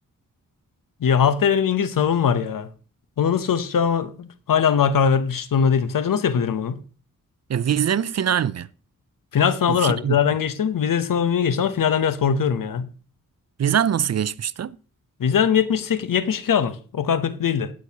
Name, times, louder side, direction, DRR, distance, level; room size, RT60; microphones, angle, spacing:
voice 1, 1.0-2.7 3.2-6.8 9.3-12.9 15.2-17.7, left 7 dB, 75° left, 0.9 m, -21 dB
voice 2, 7.5-8.7 9.7-10.2 13.6-14.8, right 9 dB, 50° right, 0.5 m, -23 dB
18.5 x 6.3 x 2.9 m
cardioid pair, 70°, 34 cm